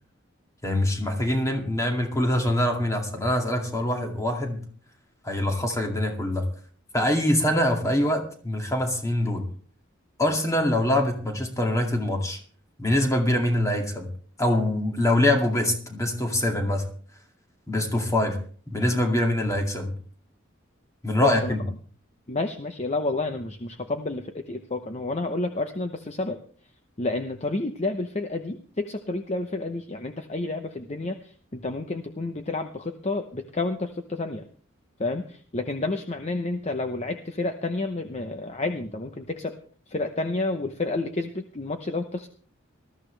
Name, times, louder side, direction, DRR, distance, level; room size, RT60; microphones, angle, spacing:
voice 1, 0.6-4.6 5.2-6.4 6.9-9.4 10.2-12.4 12.8-14.1 14.4-16.8 17.7-18.4 18.7-19.9 21.0-21.6, left 1 dB, 15° left, 3 dB, 2.2 m, -24 dB
voice 2, 21.2-21.5 22.3-26.4 27.0-34.4 35.0-39.5 39.9-42.3, left 2 dB, 35° left, 7 dB, 0.8 m, -30 dB
20.0 x 13.5 x 3.3 m, 0.44 s
head